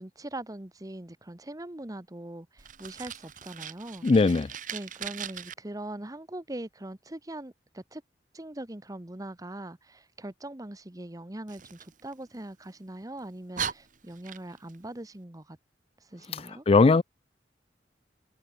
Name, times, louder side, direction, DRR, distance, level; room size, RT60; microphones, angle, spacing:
voice 1, 0.0-4.1 4.7-8.0 8.3-15.6 16.0-16.6, right 1 dB, 20° right, 1.1 m, -41 dB
Fire, 2.6-5.5 11.5-12.7 13.2-13.3 13.5-14.8, right 8 dB, 45° right, 1.7 m, -39 dB
voice 2, 4.0-4.5 16.3-17.0, left 3 dB, 35° left, 0.4 m, -20 dB
head